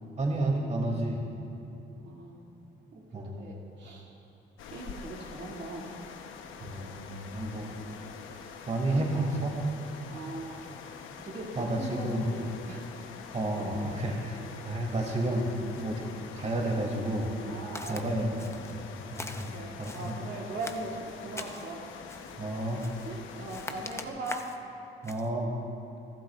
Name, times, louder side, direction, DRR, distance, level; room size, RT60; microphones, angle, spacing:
voice 1, 0.2-1.2 3.1-3.4 6.6-7.7 8.7-9.6 11.6-12.3 13.3-16.0 16.3-17.3 17.9-18.2 18.7-18.8 19.1-20.1 22.4-22.8 25.0-25.5, right 1 dB, 35° right, -1 dB, 2.7 m, -31 dB
voice 2, 1.9-2.4 2.9-4.1 4.7-5.9 10.1-10.7 11.2-12.9 13.3-14.2 17.4-18.7 19.5-22.0 23.1-24.5, right 2 dB, 60° right, -4 dB, 2.5 m, -40 dB
sound 1, 4.6-24.1, left 6 dB, 85° left, 1.0 m, -45 dB
Walk footsteps, 17.7-18.0 18.4-18.8 19.1-20.1 20.6-21.7 22.1-22.4 22.8-23.1 23.5-24.6 25.0-25.3, left 2 dB, 15° left, 0.9 m, -42 dB
29.5 x 12.5 x 2.5 m, 2.9 s
cardioid pair, 90°, 20 cm